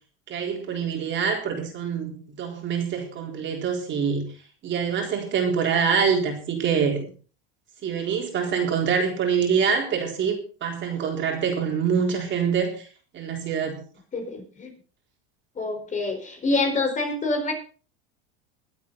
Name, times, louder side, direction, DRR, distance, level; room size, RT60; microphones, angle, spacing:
voice 1, 0.3-4.2 4.6-7.1 7.8-12.9 13.1-13.8, right 6 dB, 40° right, 2 dB, 4.0 m, -25 dB
voice 2, 14.1-14.7 15.6-17.5, left 3 dB, 25° left, 4 dB, 4.5 m, -26 dB
22.0 x 8.4 x 4.0 m, 0.38 s
supercardioid pair, 120°, 31 cm